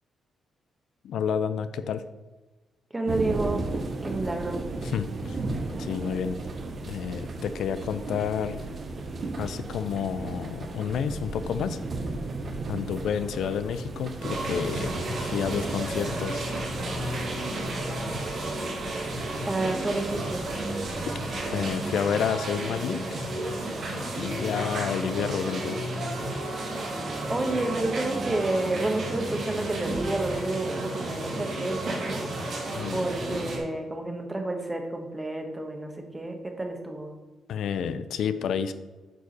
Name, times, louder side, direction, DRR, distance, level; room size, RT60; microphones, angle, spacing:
voice 1, 1.0-2.0 4.8-5.4 5.8-6.4 6.9-8.6 9.4-11.8 12.7-14.9 15.2-16.5 21.5-23.2 24.1-25.8 32.7-33.1 37.5-38.7, left 7 dB, 75° left, 12 dB, 0.4 m, -30 dB
voice 2, 2.9-3.6 4.0-4.6 19.5-20.4 27.3-32.3 32.9-37.1, right 2 dB, 15° right, 4 dB, 1.1 m, -30 dB
sound 1, 3.1-22.0, right 3 dB, 40° right, 0.9 m, -36 dB
sound 2, 14.2-33.6, right 1 dB, 60° right, 2.6 m, -32 dB
9.0 x 4.8 x 4.1 m, 1.2 s
cardioid pair, 135°, 0 cm